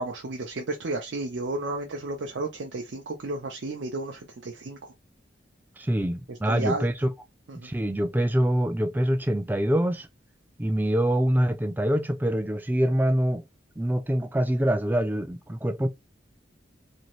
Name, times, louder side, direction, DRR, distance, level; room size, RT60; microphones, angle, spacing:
voice 1, 0.0-4.9 6.3-6.9 7.5-7.7, right 2 dB, 80° right, 0.5 m, -33 dB
voice 2, 5.8-7.1 7.6-10.1 10.6-13.4 13.8-15.9, equal, 10° right, 0.3 m, -25 dB
2.7 x 2.7 x 3.0 m
head